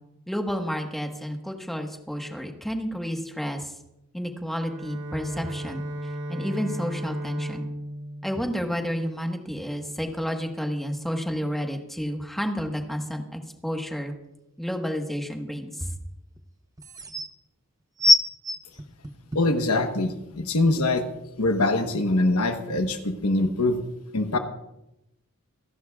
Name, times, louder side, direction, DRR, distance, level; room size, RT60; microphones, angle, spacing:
voice 1, 0.3-3.7 4.1-5.8 6.3-7.7 8.2-14.1 14.6-15.9, equal, ahead, 3 dB, 1.4 m, -30 dB
Bowed string instrument, 4.6-9.5, right 1 dB, 55° right, 2.8 m, -35 dB
sound 1, 14.7-14.8 16.4-16.5 16.8-17.3 18.0-19.6 20.3-20.4, left 1 dB, 15° right, 0.8 m, -22 dB
voice 2, 19.3-21.1 21.4-23.8 24.1-24.4, left 2 dB, 70° left, 6 dB, 1.2 m, -23 dB
26.5 x 11.5 x 2.4 m, 0.88 s
head